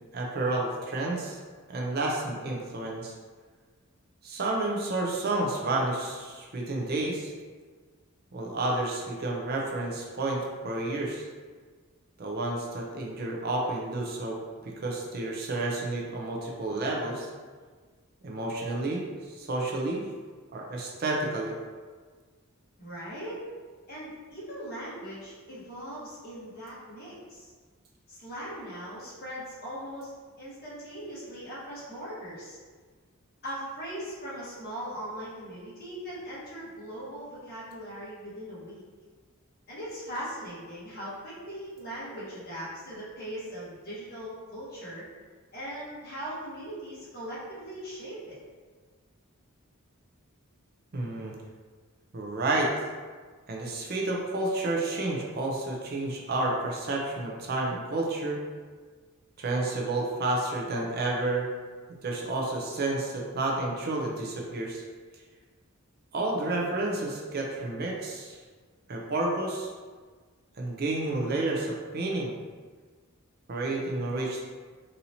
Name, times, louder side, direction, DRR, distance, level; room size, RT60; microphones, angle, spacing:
voice 1, 0.1-1.4 1.7-3.1 4.2-7.3 8.3-11.2 12.2-14.4 14.6-17.3 18.2-20.1 20.5-21.5 50.9-51.3 52.1-52.7 53.5-58.4 59.4-61.5 62.0-64.8 66.1-68.4 68.9-69.7 70.6-72.4 73.5-74.4, right 2 dB, 45° right, -1 dB, 0.5 m, -30 dB
voice 2, 22.8-23.4 23.9-27.5 28.1-30.1 30.4-32.6 33.4-38.8 39.7-45.0 45.5-48.4, equal, 45° left, -8 dB, 1.4 m, -40 dB
4.1 x 2.8 x 2.7 m, 1.5 s
head